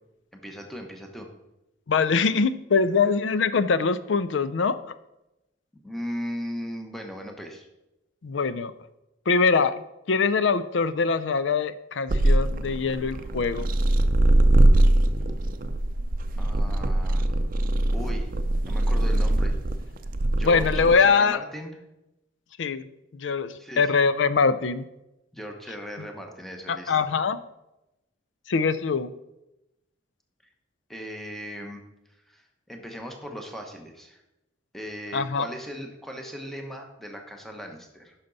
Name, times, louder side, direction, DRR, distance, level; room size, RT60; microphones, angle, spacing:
voice 1, 0.3-1.3 5.7-7.7 16.4-17.3 17.9-18.3 18.7-19.6 20.3-21.7 23.6-23.9 25.3-27.0 30.9-31.8 32.3-34.2 34.7-38.1, equal, ahead, 3 dB, 1.0 m, -38 dB
voice 2, 1.9-4.9 8.2-8.7 9.3-13.7 20.4-21.4 22.6-22.9 23.1-24.9 26.7-27.4 28.5-29.1 35.1-35.5, left 5 dB, 70° left, 14 dB, 0.5 m, -23 dB
sound 1, 12.1-21.0, right 1 dB, 50° right, 0.5 m, -22 dB
10.5 x 5.8 x 4.0 m, 0.92 s
head